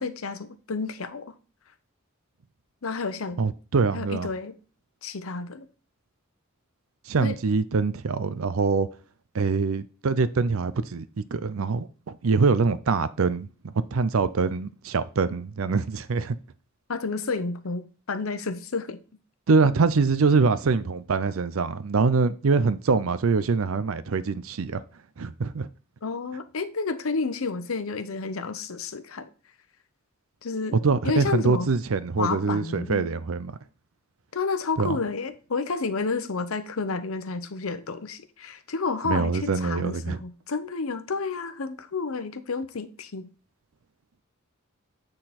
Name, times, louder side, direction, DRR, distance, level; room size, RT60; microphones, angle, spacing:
voice 1, 0.0-1.3 2.8-3.4 3.9-4.5 5.0-5.7 7.2-7.4 16.9-19.0 26.0-29.3 30.4-30.8 31.0-31.7 32.2-33.1 34.3-43.3, left 4 dB, 80° left, 0.8 m, -30 dB
voice 2, 3.4-4.3 7.1-8.9 9.3-13.5 13.8-16.4 19.5-24.8 25.2-25.7 30.8-33.6 34.8-35.0 39.0-40.2, right 4 dB, 75° right, 0.5 m, -24 dB
9.0 x 3.9 x 4.2 m
head